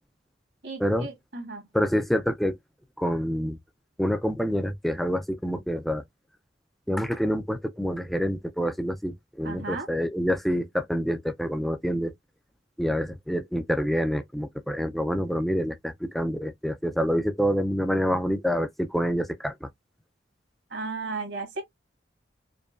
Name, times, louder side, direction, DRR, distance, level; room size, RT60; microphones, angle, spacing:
voice 1, 0.6-1.7 9.4-9.9 20.7-21.6, right 3 dB, 70° right, 1.7 m, -35 dB
voice 2, 1.7-2.6 3.0-3.6 4.0-6.0 6.9-12.1 12.8-19.7, equal, ahead, 0.4 m, -27 dB
5.1 x 2.3 x 2.4 m
head